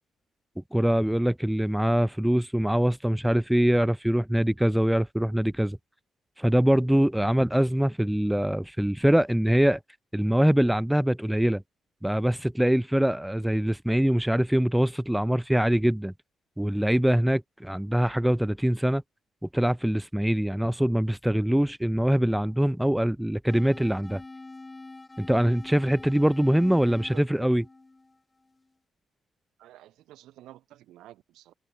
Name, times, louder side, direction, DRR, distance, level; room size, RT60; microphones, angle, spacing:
voice 1, 0.7-5.8 6.4-9.8 10.1-11.6 12.0-16.1 16.6-19.0 19.4-24.2 25.2-27.6, right 1 dB, 5° right, 0.6 m, -23 dB
sound 1, 23.5-28.5, left 2 dB, 20° left, 4.4 m, -45 dB
voice 2, 27.0-27.7 29.6-31.5, right 14 dB, 85° right, 6.7 m, -51 dB
cardioid pair, 90°, 0 cm